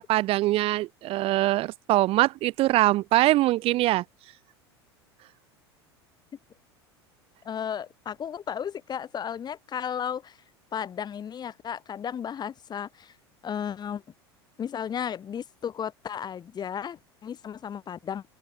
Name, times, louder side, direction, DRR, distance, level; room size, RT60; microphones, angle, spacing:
voice 1, 0.0-4.0, right 17 dB, 45° right, 1.2 m, -23 dB
voice 2, 7.4-10.4 10.7-13.1 13.4-14.0 14.6-18.2, left 8 dB, 30° left, 6.0 m, -34 dB
open air
figure-of-eight pair, 80°, 14 cm